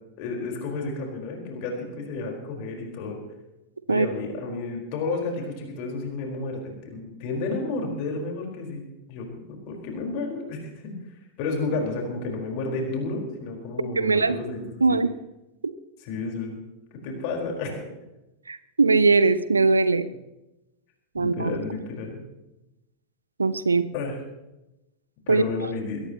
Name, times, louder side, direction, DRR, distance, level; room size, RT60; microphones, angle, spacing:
voice 1, 0.2-3.2 3.9-8.8 9.1-10.9 11.4-15.0 16.0-16.6 17.0-17.9 21.1-22.2 23.9-24.2 25.3-26.0, left 3 dB, 45° left, 1 dB, 4.7 m, -31 dB
voice 2, 14.0-14.4 14.8-15.1 15.6-15.7 18.5-20.1 21.1-21.5 23.4-23.9 25.3-25.4, right 3 dB, 75° right, 16 dB, 0.7 m, -20 dB
22.0 x 17.0 x 3.1 m, 0.97 s
figure-of-eight pair, 90°, 0 cm